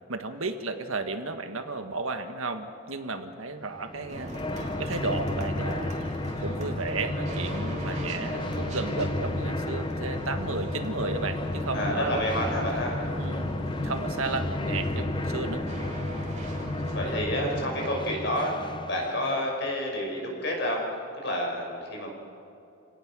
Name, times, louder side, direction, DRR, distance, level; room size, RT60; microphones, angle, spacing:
voice 1, 0.1-4.3 4.8-5.9 6.4-12.2 13.2-13.5 13.8-15.6, right 3 dB, 75° right, 7 dB, 1.6 m, -33 dB
sound 1, 3.7-19.5, left 1 dB, 25° left, 0.6 m, -32 dB
sound 2, 4.1-17.2, equal, 30° right, 2.8 m, -39 dB
voice 2, 11.7-13.0 16.9-20.8 21.2-22.1, equal, 55° left, 0 dB, 5.7 m, -29 dB
28.0 x 18.0 x 6.2 m, 2.8 s
head